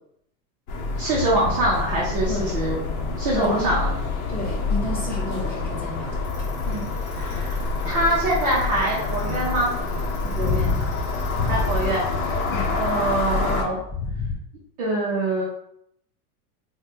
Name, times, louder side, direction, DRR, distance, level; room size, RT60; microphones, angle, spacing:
sound 1, 0.7-13.6, left 3 dB, 65° left, 0.9 m, -27 dB
voice 1, 1.0-2.8 3.2-3.9 6.6-9.7 11.4-12.0 12.7-13.8 14.8-15.4, right 1 dB, 25° right, -5 dB, 0.4 m, -24 dB
voice 2, 3.3-3.8 4.3-6.1 10.2-10.7 12.5-12.7, left 1 dB, 5° left, -8 dB, 1.0 m, -31 dB
Bicycle, 6.2-14.3, left 4 dB, 25° left, 1.2 m, -29 dB
3.7 x 2.1 x 3.6 m, 0.74 s
supercardioid pair, 170°, 45 cm